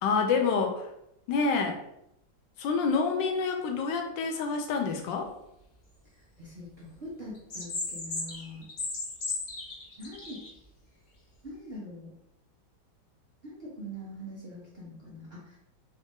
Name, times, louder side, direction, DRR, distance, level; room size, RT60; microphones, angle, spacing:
voice 1, 0.0-0.9 1.3-1.8 2.6-5.3, left 4 dB, 75° left, 3 dB, 1.3 m, -27 dB
voice 2, 6.4-8.7 10.0-10.4 11.4-12.1 13.4-15.6, equal, 45° right, -6 dB, 0.8 m, -43 dB
sound 1, 7.3-10.5, left 3 dB, 55° left, 1.2 m, -35 dB
4.1 x 2.6 x 3.6 m, 0.78 s
omnidirectional pair, 2.1 m